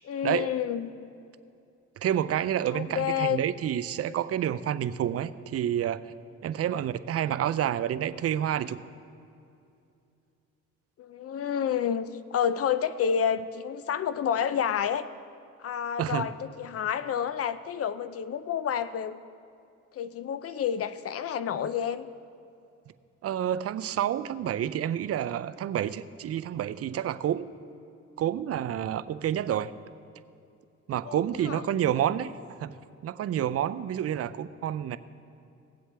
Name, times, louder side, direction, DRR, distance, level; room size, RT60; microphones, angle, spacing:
voice 1, 0.1-0.9 2.7-3.4 11.0-15.1 15.6-19.2 19.9-22.1 31.1-31.6, left 8 dB, 50° left, 13 dB, 0.5 m, -29 dB
voice 2, 2.0-6.0 6.4-8.8 16.0-16.3 23.2-27.5 28.2-29.7 30.9-32.7 33.0-35.0, right 10 dB, 50° right, 14 dB, 0.5 m, -29 dB
18.0 x 7.8 x 3.4 m, 2.6 s
cardioid pair, 90°, 30 cm